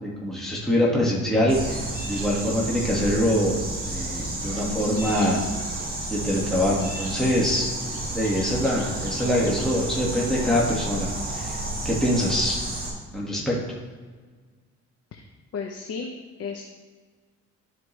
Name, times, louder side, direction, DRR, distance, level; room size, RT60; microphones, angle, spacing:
voice 1, 0.0-5.4 6.1-7.7 8.1-11.6 11.8-12.6 13.1-13.5, equal, ahead, -5 dB, 1.8 m, -24 dB
sound 1, 1.5-12.9, right 2 dB, 30° right, 2.4 m, -31 dB
voice 2, 15.5-16.1 16.4-16.7, left 5 dB, 55° left, 2 dB, 0.8 m, -33 dB
12.5 x 4.6 x 3.3 m, 1.5 s
cardioid pair, 90°, 30 cm